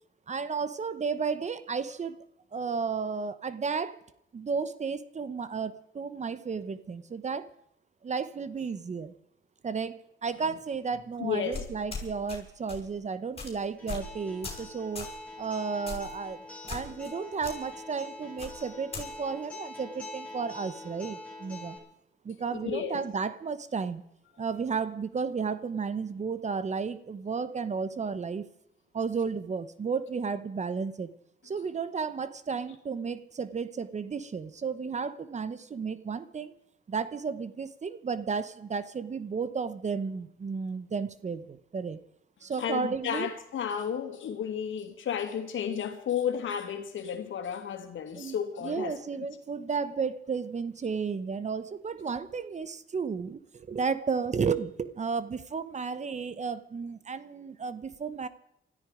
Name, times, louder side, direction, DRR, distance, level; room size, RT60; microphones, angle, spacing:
voice 1, 0.3-2.2 2.5-4.0 4.3-7.5 8.0-9.1 9.6-15.1 15.4-21.8 22.2-24.0 24.4-28.4 28.9-31.1 31.4-36.5 36.9-42.0 42.4-43.3 48.1-48.4 48.6-58.3, right 5 dB, 35° right, 0.9 m, -33 dB
voice 2, 11.2-11.6 22.5-23.0 42.6-49.0, left 8 dB, 70° left, 2.6 m, -33 dB
sound 1, 11.5-12.4 12.7-12.9 13.4-13.5 13.9-14.1 14.4-14.7 15.0-15.2 15.9-16.1 16.7-17.1 17.4-17.5 18.4-19.1, left 4 dB, 30° left, 5.6 m, -38 dB
Acoustic guitar, 13.8-21.8, left 2 dB, 5° left, 7.8 m, -44 dB
20.0 x 13.5 x 5.0 m
cardioid pair, 105°, 21 cm